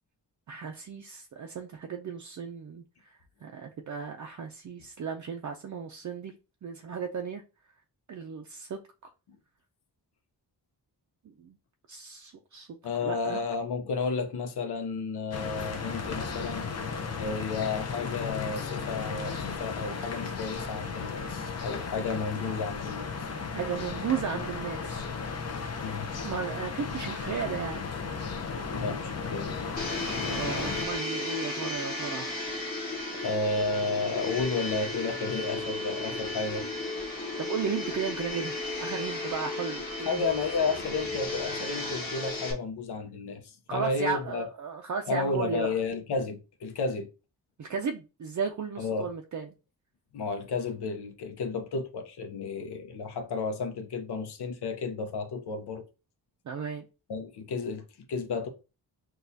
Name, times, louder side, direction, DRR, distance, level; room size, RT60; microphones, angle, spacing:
voice 1, 0.5-6.3 6.6-7.4 8.1-8.8 11.2-11.6 11.9-12.7 13.0-13.4 23.5-25.0 26.2-27.9 30.3-32.3 37.4-40.3 43.7-45.7 47.6-49.5 56.5-56.9, right 6 dB, 45° right, 0.5 m, -35 dB
voice 2, 12.8-16.7 17.2-23.3 25.8-26.1 28.7-29.6 33.1-36.6 40.0-44.4 45.1-47.1 48.8-49.1 50.1-55.8 57.1-58.5, left 4 dB, 75° left, 0.8 m, -32 dB
sound 1, 15.3-30.9, left 5 dB, 40° left, 0.6 m, -35 dB
Domestic sounds home sounds, 29.8-42.5, left 2 dB, 20° left, 1.2 m, -34 dB
6.1 x 2.3 x 2.7 m
wide cardioid pair, 150°, 40 cm